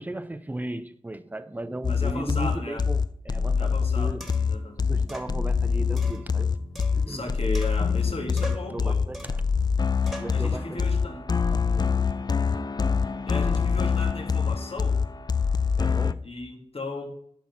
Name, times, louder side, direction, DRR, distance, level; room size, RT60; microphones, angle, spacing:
voice 1, 0.0-4.2 4.8-6.6 6.9-7.3 8.2-9.3 9.9-12.0 15.8-16.2, right 1 dB, 15° right, 0.6 m, -37 dB
sound 1, 1.8-16.1, left 5 dB, 40° left, 0.4 m, -25 dB
voice 2, 1.9-2.8 3.6-4.1 4.5-4.8 7.1-9.0 10.3-11.2 13.3-15.0 16.2-17.1, left 2 dB, 60° left, 1.9 m, -35 dB
sound 2, 3.5-3.6 4.2-4.6 5.1-5.3 6.0-7.2 7.5-8.1 8.4-8.8 9.1-9.5 10.1-10.4, equal, ahead, 1.8 m, -41 dB
10.0 x 5.8 x 6.0 m
wide cardioid pair, 65°, 11 cm